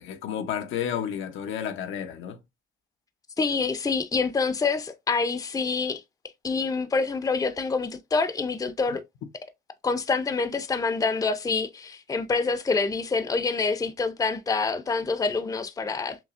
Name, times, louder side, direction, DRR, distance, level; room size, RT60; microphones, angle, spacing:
voice 1, 0.0-2.4 8.9-9.0, left 9 dB, 85° left, 0.7 m, -31 dB
voice 2, 3.4-6.0 6.4-9.0 9.8-16.2, left 4 dB, 20° left, 0.5 m, -26 dB
5.9 x 2.0 x 2.5 m
cardioid pair, 90°, 20 cm